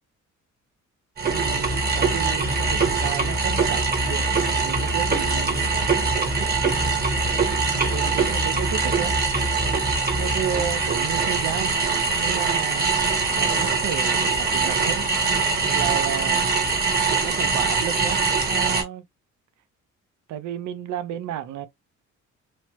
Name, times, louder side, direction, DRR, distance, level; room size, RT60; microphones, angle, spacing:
Stationary Bike, 1.2-18.8, right 4 dB, 30° right, 1.0 m, -23 dB
voice 1, 1.3-7.1 7.6-9.2 10.1-11.8 12.2-12.9 13.4-15.1 15.7-16.6 17.2-19.0 20.3-21.7, right 10 dB, 70° right, 0.6 m, -33 dB
3.1 x 2.1 x 2.9 m
cardioid pair, 90°, 30 cm